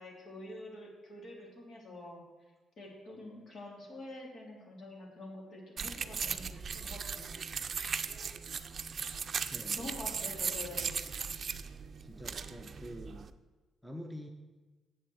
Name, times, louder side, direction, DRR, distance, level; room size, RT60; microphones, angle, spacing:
voice 1, 0.0-2.2 2.8-7.5 9.8-11.3, left 1 dB, 55° left, -1 dB, 3.3 m, -47 dB
sound 1, 5.8-13.3, right 6 dB, 45° right, 0.6 m, -38 dB
voice 2, 9.5-10.0 12.0-13.3 13.8-14.3, equal, ahead, 3 dB, 1.0 m, -46 dB
8.0 x 7.4 x 7.9 m, 1.2 s
cardioid pair, 90°, 0 cm